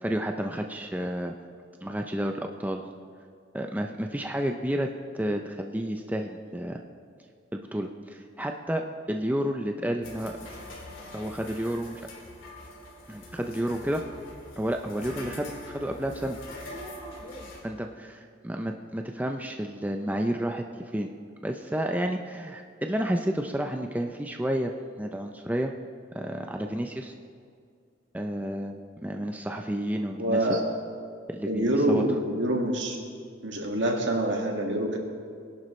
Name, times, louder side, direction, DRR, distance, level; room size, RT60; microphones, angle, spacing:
voice 1, 0.0-1.4 1.8-2.8 3.5-4.9 5.1-6.8 7.5-10.3 11.1-12.0 13.1-14.0 14.6-16.4 17.6-20.6 20.9-21.1 21.4-25.7 26.1-27.1 28.1-30.5 31.3-32.0, equal, 10° right, 3 dB, 0.5 m, -31 dB
sound 1, 10.0-17.6, left 1 dB, 85° left, 2.9 m, -43 dB
voice 2, 30.2-30.6 31.5-33.0 33.4-35.0, right 1 dB, 65° right, 1 dB, 2.1 m, -26 dB
22.0 x 11.5 x 3.2 m, 2.2 s
head